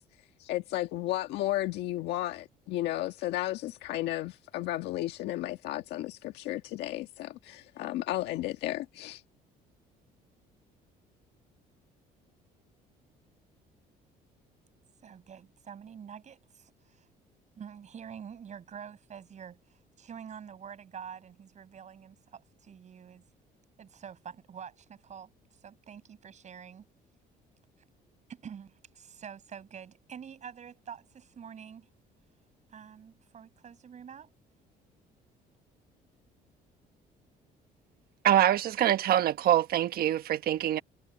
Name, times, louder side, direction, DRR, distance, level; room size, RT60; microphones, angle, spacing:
voice 1, 0.4-9.2, left 15 dB, 85° left, 1.5 m, -33 dB
voice 2, 15.0-17.1 17.6-23.3 23.8-26.9 28.3-31.9 32.7-34.3, right 7 dB, 45° right, 7.1 m, -47 dB
voice 3, 38.2-40.8, right 11 dB, 65° right, 1.2 m, -24 dB
cardioid pair, 110°, 17 cm